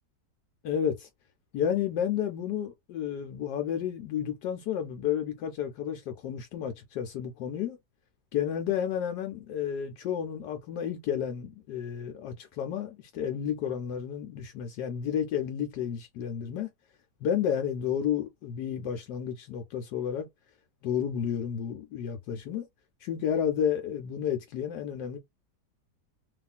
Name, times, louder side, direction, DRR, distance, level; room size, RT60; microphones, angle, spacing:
voice 1, 0.6-1.1 1.5-7.8 8.3-16.7 17.2-20.3 20.8-22.7 23.0-25.2, left 9 dB, 75° left, 1.1 m, -31 dB
2.9 x 2.4 x 2.2 m
omnidirectional pair, 1.8 m